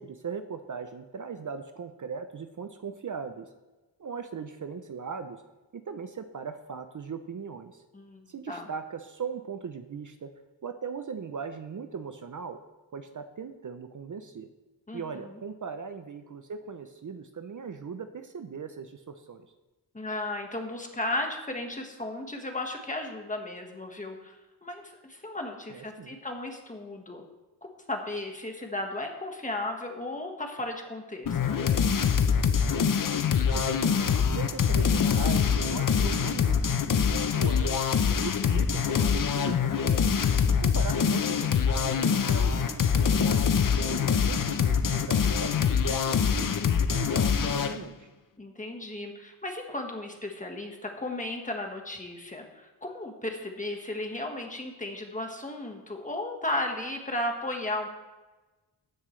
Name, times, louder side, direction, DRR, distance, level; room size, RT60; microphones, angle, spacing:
voice 1, 0.0-3.5 4.0-5.4 5.7-7.8 8.3-10.3 10.6-12.6 12.9-14.5 14.9-19.5 25.7-26.2 33.5-37.8 38.2-40.0 40.6-43.4 43.9-46.6 46.9-48.1, right 6 dB, 45° right, 8 dB, 0.6 m, -39 dB
voice 2, 7.9-8.7 14.9-15.4 19.9-24.4 24.6-27.2 27.6-31.6 40.3-40.7 48.4-57.9, left 1 dB, 20° left, 2 dB, 1.5 m, -35 dB
sound 1, 31.3-47.8, left 6 dB, 50° left, 0.7 m, -24 dB
15.0 x 9.9 x 3.2 m, 1.2 s
wide cardioid pair, 150°, 42 cm